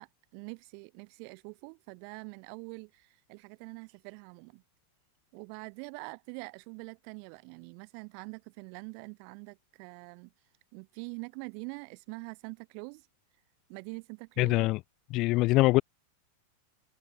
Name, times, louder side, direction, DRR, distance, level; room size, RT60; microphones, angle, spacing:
voice 1, 0.0-4.6 5.3-10.3 10.7-13.1 13.7-14.7, right 40 dB or more, 45° right, 2.4 m, -44 dB
voice 2, 14.4-14.8 15.1-15.8, left 20 dB, 40° left, 0.4 m, -23 dB
figure-of-eight pair, 90°, 0 cm